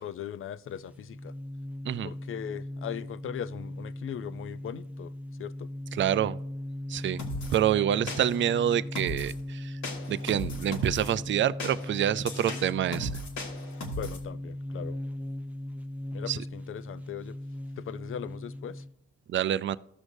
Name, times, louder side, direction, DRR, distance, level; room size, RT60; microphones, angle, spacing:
voice 1, 0.0-1.3 2.0-5.1 5.4-5.7 14.0-15.0 16.1-17.3 17.8-18.8, left 9 dB, 45° left, 0.5 m, -39 dB
sound 1, 0.7-18.9, left 1 dB, 5° right, 0.8 m, -38 dB
voice 2, 5.9-6.4 6.9-7.2 7.5-9.8 10.1-13.2 16.3-16.4 19.3-19.8, right 10 dB, 40° right, 0.4 m, -27 dB
sound 2, 7.2-7.6 8.1-8.5 8.9-9.4 9.8-11.1 11.6-14.2, left 1 dB, 70° left, 1.8 m, -37 dB
14.5 x 6.3 x 2.6 m
cardioid pair, 90°, 30 cm